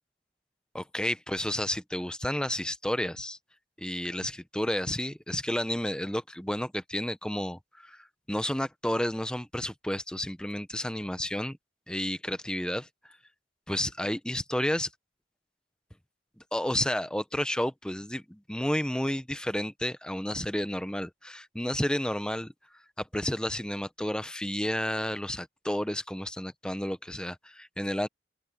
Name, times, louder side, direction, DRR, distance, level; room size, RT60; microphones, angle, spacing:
voice 1, 0.7-3.4 3.8-8.0 8.3-11.6 11.9-12.9 13.7-14.9 16.5-22.5 23.0-28.1, left 1 dB, 5° left, 0.9 m, -31 dB
open air
head